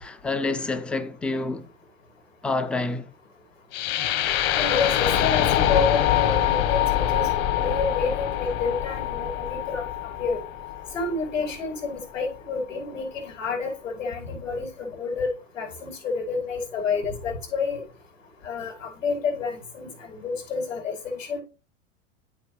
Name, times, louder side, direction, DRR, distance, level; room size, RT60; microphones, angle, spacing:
voice 1, 0.0-1.7 2.4-3.1, left 3 dB, 5° left, 0.3 m, -28 dB
sound 1, 3.7-11.8, left 11 dB, 50° left, 1.3 m, -24 dB
voice 2, 4.6-7.3 7.6-9.9 10.2-10.4 10.9-15.3 15.5-17.8 18.4-21.4, left 4 dB, 85° left, 4.4 m, -29 dB
13.5 x 4.6 x 3.3 m
figure-of-eight pair, 95°, 38 cm